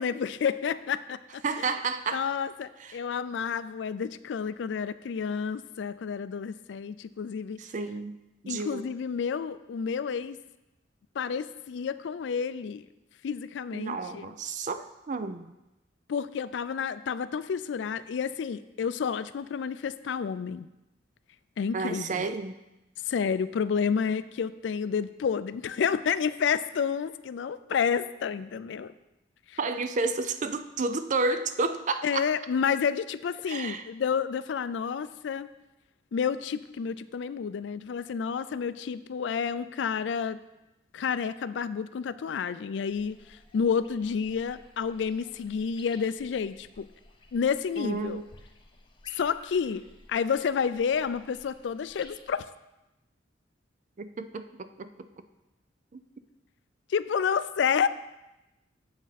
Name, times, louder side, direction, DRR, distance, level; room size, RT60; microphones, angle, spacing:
voice 1, 0.0-1.7 2.1-7.6 8.5-10.4 11.2-12.9 13.2-14.3 16.1-20.7 21.6-22.2 23.1-28.9 29.5-29.6 32.0-35.5 36.1-40.4 40.9-43.2 43.5-46.9 47.3-48.2 49.1-49.8 50.1-52.5 56.9-57.9, left 6 dB, 70° left, 14 dB, 0.3 m, -30 dB
voice 2, 1.4-2.3 2.8-3.0 7.6-8.2 8.4-8.9 13.7-15.5 21.7-22.6 29.6-32.3 33.5-33.8 47.8-48.2 54.0-55.1 55.9-56.0, right 3 dB, 40° right, 10 dB, 0.5 m, -31 dB
sound 1, 42.9-52.4, left 2 dB, 25° left, 0.8 m, -55 dB
7.8 x 7.5 x 4.1 m, 0.97 s
head